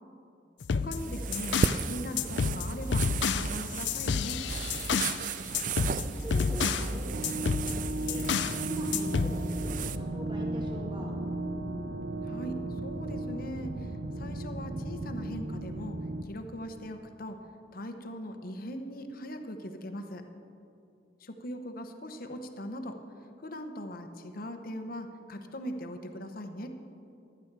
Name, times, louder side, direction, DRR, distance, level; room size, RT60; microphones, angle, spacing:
sound 1, 0.6-1.8 2.2-5.2 5.5-6.9 7.2-8.6 8.9-9.4, left 5 dB, 85° left, 0.5 m, -30 dB
voice 1, 0.7-4.4 12.2-17.4 17.7-20.2 21.2-23.0 23.4-26.7, equal, 55° left, 7 dB, 1.0 m, -40 dB
sound 2, 1.0-10.0, right 6 dB, 50° right, 0.4 m, -36 dB
voice 2, 5.7-7.0 7.4-8.2 8.6-11.1, equal, 25° right, -2 dB, 1.9 m, -42 dB
sound 3, 7.1-16.2, right 1 dB, 65° right, 0.8 m, -35 dB
15.5 x 11.5 x 4.7 m, 2.7 s
head